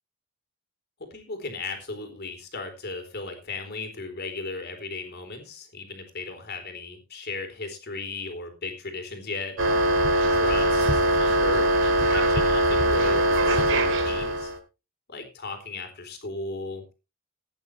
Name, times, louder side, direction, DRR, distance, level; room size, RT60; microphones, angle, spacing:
voice 1, 1.0-9.6 10.3-14.5 15.1-16.9, left 3 dB, 50° left, 6 dB, 3.9 m, -36 dB
sound 1, 9.6-14.6, right 1 dB, 60° right, 2.7 m, -22 dB
16.0 x 10.5 x 3.3 m, 0.29 s
head